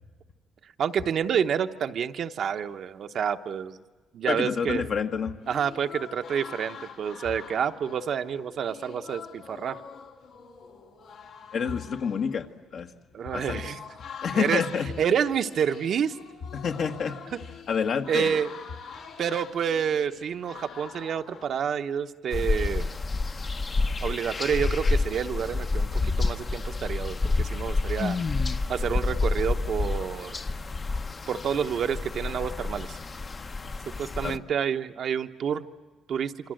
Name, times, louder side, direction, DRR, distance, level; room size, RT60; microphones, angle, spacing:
voice 1, 0.8-3.8 4.1-4.9 5.5-9.8 13.1-13.9 14.3-14.6 15.0-16.2 18.1-18.5 19.2-22.9 24.0-28.2 28.7-30.3 31.3-33.0 33.6-35.6 36.1-36.3, right 8 dB, 65° right, 7 dB, 1.0 m, -28 dB
voice 2, 4.3-5.4 11.5-12.9 13.3-13.6 14.2-14.9 16.5-17.2 17.7-18.4 34.2-34.4, left 6 dB, 60° left, 5 dB, 1.6 m, -28 dB
sound 1, 5.4-21.6, left 6 dB, 85° left, 4.0 m, -45 dB
sound 2, 22.3-34.4, left 3 dB, 35° left, 0.9 m, -29 dB
27.0 x 25.5 x 7.8 m, 1.3 s
cardioid pair, 90°, 0 cm